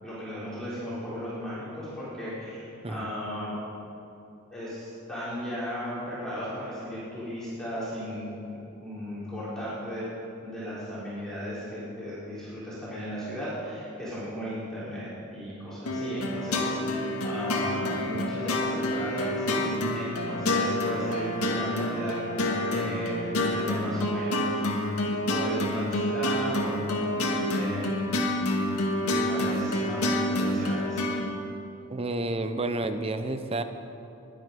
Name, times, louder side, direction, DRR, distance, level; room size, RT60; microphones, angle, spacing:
voice 1, 0.0-3.6 4.5-8.2 8.8-10.1 10.4-16.9 17.2-19.7 19.9-24.7 25.0-27.9 29.0-31.0, equal, 5° left, -11 dB, 3.9 m, -36 dB
sound 1, 15.9-31.3, left 1 dB, 80° left, 2.0 m, -28 dB
voice 2, 31.9-33.6, right 2 dB, 25° right, 9 dB, 0.7 m, -30 dB
21.5 x 9.5 x 5.3 m, 2.7 s
head